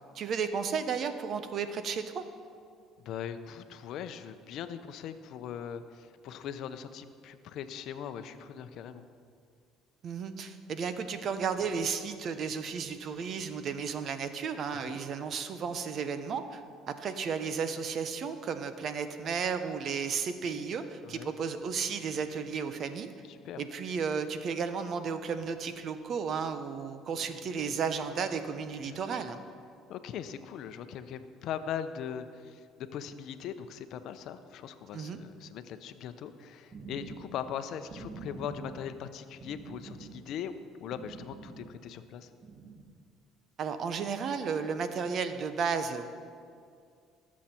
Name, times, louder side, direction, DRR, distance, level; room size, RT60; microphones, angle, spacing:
voice 1, 0.1-2.2 10.0-23.1 23.6-29.4 34.9-35.2 43.6-46.1, right 6 dB, 55° right, 9 dB, 0.9 m, -33 dB
voice 2, 3.0-9.1 14.7-15.0 21.0-21.3 23.3-23.6 28.8-29.0 29.9-40.5 40.8-42.3, left 8 dB, 65° left, 10 dB, 0.7 m, -40 dB
sound 1, 36.7-42.1 42.4-42.8, right 4 dB, 35° right, 1.6 m, -47 dB
19.5 x 7.4 x 4.4 m, 2.2 s
supercardioid pair, 85°, 0 cm